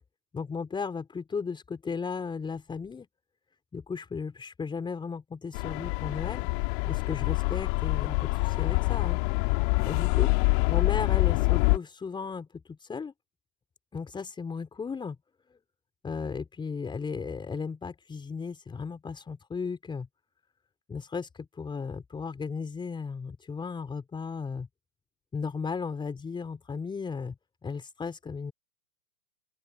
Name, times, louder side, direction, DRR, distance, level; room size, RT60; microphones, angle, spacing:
voice 1, 0.3-3.1 3.7-6.5 6.9-9.2 9.9-13.1 13.9-15.2 16.0-20.1 20.9-24.7 25.3-27.4 27.6-28.5, left 5 dB, 10° left, 5.2 m, -35 dB
sound 1, 5.5-11.8, left 32 dB, 40° left, 3.2 m, -26 dB
open air
hypercardioid pair, 130°, 42 cm